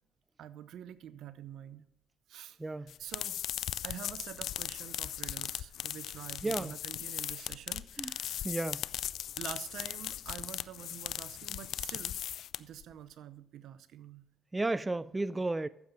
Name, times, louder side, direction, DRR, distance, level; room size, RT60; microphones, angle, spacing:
voice 1, 0.4-1.9 2.3-3.4 3.8-8.5 9.4-12.2 12.6-14.2, right 10 dB, 75° right, 0.6 m, -47 dB
sound 1, 2.9-12.8, left 11 dB, 70° left, 0.3 m, -38 dB
voice 2, 6.4-6.7 8.0-8.1 8.4-8.8 14.5-15.7, right 2 dB, 20° right, 0.4 m, -32 dB
14.5 x 7.3 x 4.0 m
supercardioid pair, 65°, 0 cm